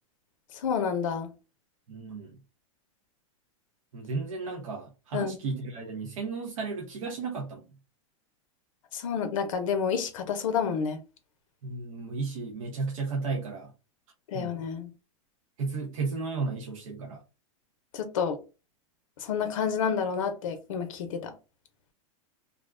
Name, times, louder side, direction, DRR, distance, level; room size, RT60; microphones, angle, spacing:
voice 1, 0.6-1.3 5.1-5.4 8.9-11.0 14.3-14.9 17.9-18.4 19.2-21.3, left 6 dB, 75° left, 0.5 m, -29 dB
voice 2, 1.9-2.4 3.9-7.7 11.6-13.7 14.3-14.6 15.6-17.2, right 4 dB, 75° right, 0.7 m, -34 dB
2.4 x 2.1 x 2.3 m
hypercardioid pair, 120°, 17 cm